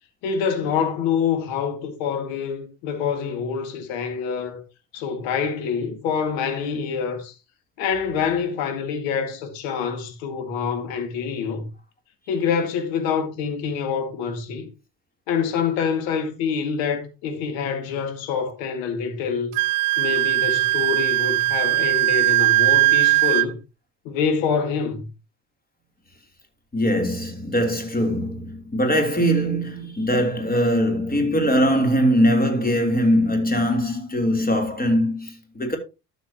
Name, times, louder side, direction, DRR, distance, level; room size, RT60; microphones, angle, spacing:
voice 1, 0.2-4.6 4.9-7.4 7.8-11.7 12.3-14.7 15.3-19.6 20.0-23.6 24.0-25.1, left 6 dB, 70° left, 2.1 m, -26 dB
Wind instrument woodwind instrument, 19.5-23.5, right 18 dB, 75° right, 0.5 m, -19 dB
voice 2, 26.7-35.8, equal, 20° left, 3.3 m, -21 dB
12.0 x 7.1 x 2.9 m
hypercardioid pair, 60°, 46 cm